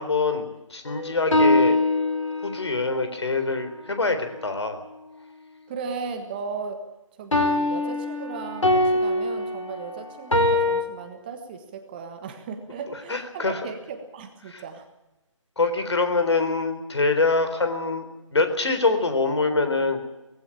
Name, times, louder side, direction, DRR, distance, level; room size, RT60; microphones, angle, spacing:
voice 1, 0.0-1.8 2.4-4.8 13.1-13.6 14.5-14.6 15.6-20.0, left 3 dB, 60° left, 8 dB, 4.0 m, -24 dB
sound 1, 0.9-2.7 7.3-10.8, left 2 dB, 75° left, 3.8 m, -23 dB
voice 2, 5.7-6.9 7.2-14.9, right 5 dB, 20° right, 7 dB, 1.4 m, -36 dB
20.0 x 16.0 x 8.9 m, 1.0 s
figure-of-eight pair, 155°, 16 cm